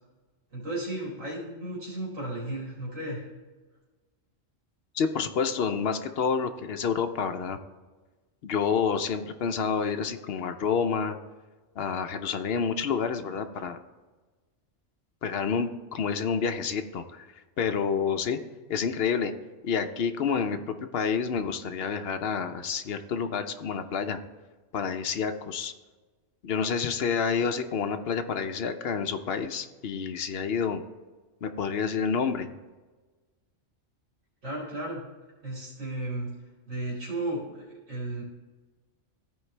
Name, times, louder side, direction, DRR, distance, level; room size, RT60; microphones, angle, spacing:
voice 1, 0.5-3.2 34.4-35.0 35.4-36.3 36.6-38.2, right 1 dB, 90° right, -6 dB, 3.0 m, -34 dB
voice 2, 4.9-7.6 8.4-11.2 11.8-13.8 15.2-17.3 17.6-18.4 18.7-19.3 19.6-24.2 24.7-25.7 26.4-30.8 31.4-32.5, left 6 dB, 60° left, 8 dB, 0.8 m, -28 dB
14.5 x 4.8 x 3.2 m, 1.3 s
omnidirectional pair, 1.3 m